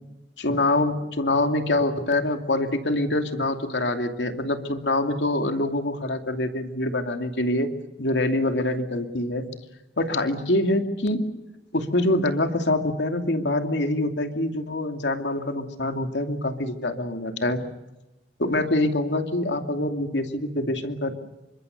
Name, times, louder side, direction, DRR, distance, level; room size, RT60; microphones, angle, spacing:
voice 1, 0.4-7.7 8.0-9.5 10.0-11.2 11.7-17.6 18.4-21.1, left 1 dB, 85° left, 6 dB, 2.7 m, -25 dB
28.5 x 25.0 x 6.7 m, 0.99 s
head